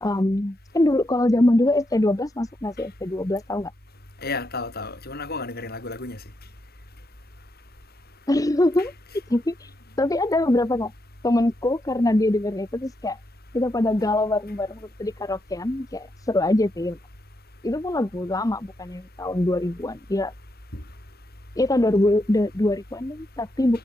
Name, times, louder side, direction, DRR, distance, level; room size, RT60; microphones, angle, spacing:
voice 1, 0.0-3.7 8.3-9.7 10.0-10.9 11.2-13.2 13.5-17.0 17.6-20.3 21.6-23.8, left 1 dB, 15° left, 0.8 m, -23 dB
voice 2, 4.2-6.2 14.0-14.1 20.7-20.8, left 3 dB, 50° left, 6.5 m, -32 dB
head